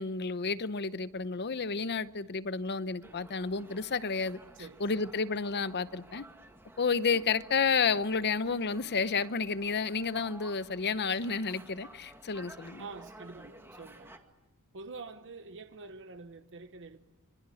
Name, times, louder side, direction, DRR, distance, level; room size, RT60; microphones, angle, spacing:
voice 1, 0.0-4.4 4.8-6.2 6.8-12.8, left 5 dB, 50° left, 0.8 m, -31 dB
sound 1, 3.0-14.2, right 1 dB, 10° right, 2.0 m, -54 dB
voice 2, 4.5-5.0 12.8-14.2 14.7-17.0, right 3 dB, 60° right, 1.0 m, -46 dB
26.0 x 24.0 x 8.5 m
head